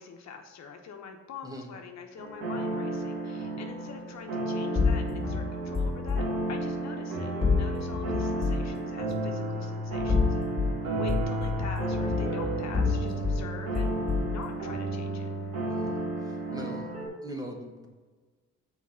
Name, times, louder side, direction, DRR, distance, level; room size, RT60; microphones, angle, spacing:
voice 1, 0.0-6.2 6.5-10.6 10.9-15.3, left 6 dB, 65° left, 4 dB, 0.9 m, -44 dB
sound 1, 2.2-17.1, right 1 dB, 90° right, 2.2 m, -32 dB
sound 2, 4.7-6.3 7.4-8.7 9.9-10.7 11.1-13.4 13.7-14.4, left 4 dB, 20° left, 2.4 m, -28 dB
voice 2, 15.7-16.9 17.2-17.9, equal, 10° right, 2 dB, 1.2 m, -42 dB
6.2 x 4.7 x 5.6 m, 1.4 s
cardioid pair, 90°, 30 cm